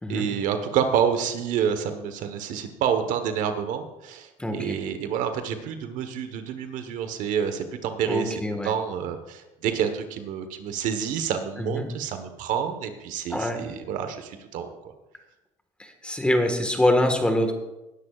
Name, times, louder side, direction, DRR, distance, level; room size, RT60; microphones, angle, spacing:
voice 1, 0.1-8.3 8.6-14.8, right 8 dB, 70° right, 8 dB, 1.3 m, -28 dB
voice 2, 4.4-4.8 8.1-8.7 11.6-11.9 13.3-13.6 15.8-17.5, left 1 dB, 10° left, 5 dB, 1.6 m, -24 dB
18.5 x 11.0 x 2.5 m, 0.99 s
cardioid pair, 115°, 13 cm